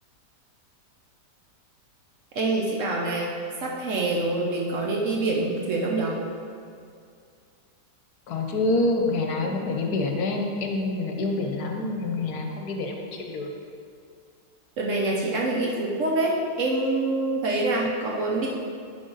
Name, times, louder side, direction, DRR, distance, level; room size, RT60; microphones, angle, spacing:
voice 1, 2.3-6.2 14.8-18.5, right 2 dB, 60° right, -2 dB, 0.9 m, -26 dB
voice 2, 8.3-13.5, left 2 dB, 70° left, 2 dB, 1.2 m, -27 dB
10.0 x 3.8 x 3.9 m, 2.3 s
omnidirectional pair, 1.8 m